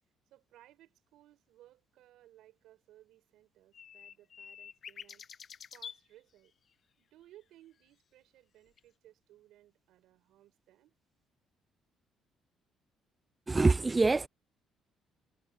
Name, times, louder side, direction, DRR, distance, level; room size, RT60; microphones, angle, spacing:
voice 1, 0.3-5.5 5.7-6.5 7.0-10.9, right 14 dB, 80° right, 6.7 m, -61 dB
sound 1, 3.7-6.0 8.8-8.9, left 7 dB, 40° left, 1.0 m, -47 dB
voice 2, 13.5-14.3, right 3 dB, 15° right, 0.3 m, -25 dB
cardioid pair, 155°, 0 cm